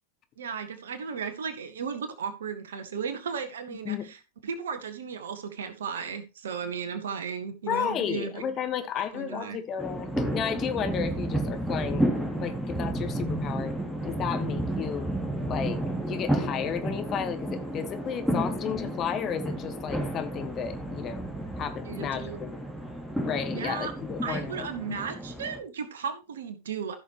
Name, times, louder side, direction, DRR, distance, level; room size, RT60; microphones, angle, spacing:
voice 1, 0.4-4.2 4.4-8.5 8.9-9.6 21.8-22.4 23.5-23.9 24.2-27.0, right 6 dB, 70° right, 1.7 m, -35 dB
voice 2, 7.7-12.1 12.4-13.8 14.1-15.1 15.5-15.8 16.1-21.2 21.6-22.5 23.3-25.0, left 8 dB, 35° left, 1.4 m, -33 dB
sound 1, 9.8-25.6, right 1 dB, ahead, 2.9 m, -31 dB
15.0 x 6.5 x 3.0 m
figure-of-eight pair, 90°, 0 cm